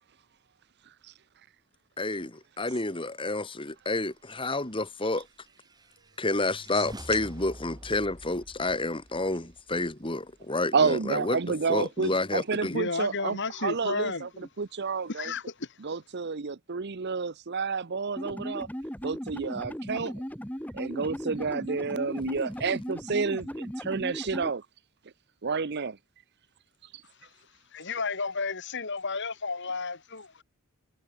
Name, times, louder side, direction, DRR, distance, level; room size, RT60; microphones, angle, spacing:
voice 1, 2.0-5.3 6.2-11.4 11.7-12.7, left 2 dB, 25° left, 2.4 m, -30 dB
sound 1, 4.8-10.4, equal, 20° right, 5.4 m, -48 dB
voice 2, 10.7-13.4 13.6-14.3 14.6-15.3 15.8-18.7 19.0-20.2 20.7-24.6 25.4-26.0, right 5 dB, 50° right, 0.7 m, -30 dB
voice 3, 12.7-14.3 15.1-15.8 27.2-27.3 27.7-30.4, left 4 dB, 55° left, 2.6 m, -33 dB
sound 2, 18.2-24.5, equal, 5° left, 3.5 m, -37 dB
head